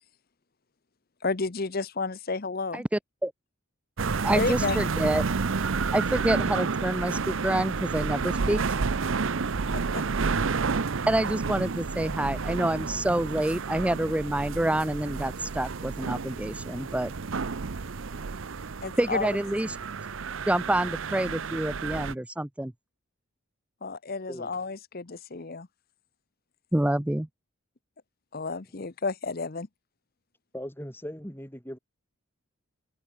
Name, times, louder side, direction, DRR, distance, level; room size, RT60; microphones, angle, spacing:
voice 1, 1.2-2.8 4.3-4.8 9.7-10.0 18.8-19.3 23.8-25.7 28.3-29.7, left 4 dB, 45° left, 0.8 m, -31 dB
voice 2, 2.7-3.3 4.2-5.2 5.9-8.6 11.1-17.1 19.0-19.8 20.5-22.7 26.7-27.3, right 1 dB, 5° right, 0.4 m, -27 dB
sound 1, 4.0-22.1, right 4 dB, 65° right, 0.7 m, -30 dB
voice 3, 30.5-31.8, equal, 10° left, 4.0 m, -39 dB
head